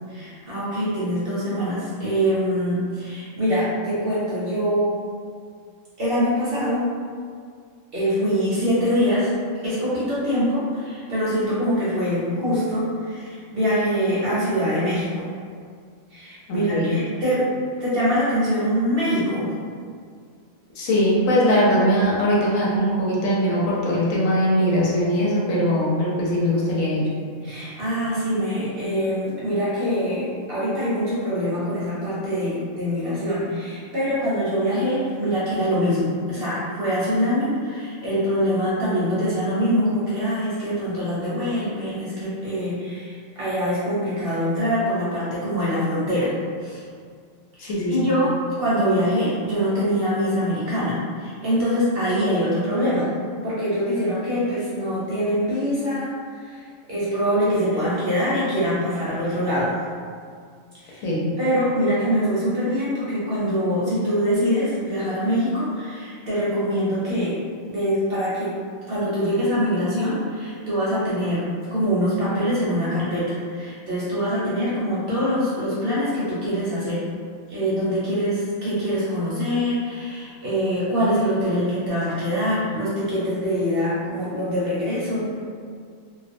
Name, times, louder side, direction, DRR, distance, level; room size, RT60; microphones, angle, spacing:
voice 1, 0.1-4.9 6.0-6.9 7.9-9.3 9.6-15.2 16.1-17.5 17.8-19.5 27.4-46.3 46.6-46.8 47.6-53.1 53.4-56.1 56.4-56.6 56.9-59.7 60.7-61.0 61.4-67.4 67.7-68.5 68.9-71.4 71.7-77.0 77.5-85.3, equal, 55° right, -10 dB, 0.7 m, -24 dB
voice 2, 16.5-16.9 20.7-27.1 47.6-48.1 61.0-61.3, equal, 75° left, -5 dB, 1.0 m, -21 dB
2.4 x 2.1 x 2.5 m, 2.1 s
omnidirectional pair, 1.4 m